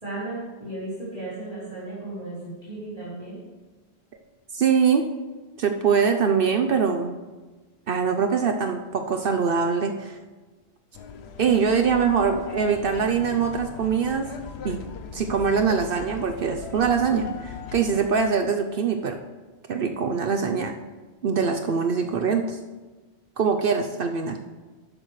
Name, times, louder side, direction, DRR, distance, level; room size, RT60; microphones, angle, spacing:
voice 1, 0.0-3.4, right 2 dB, 35° right, -12 dB, 3.7 m, -35 dB
voice 2, 4.5-5.0 5.6-7.2 7.9-10.2 11.4-14.3 14.6-14.8 15.1-19.2 19.7-20.7 21.2-22.6 23.4-24.5, right 6 dB, 60° right, 5 dB, 0.8 m, -23 dB
sound 1, 10.9-18.1, left 6 dB, 75° left, 1.0 m, -38 dB
12.5 x 8.9 x 3.2 m, 1.3 s
omnidirectional pair, 1.1 m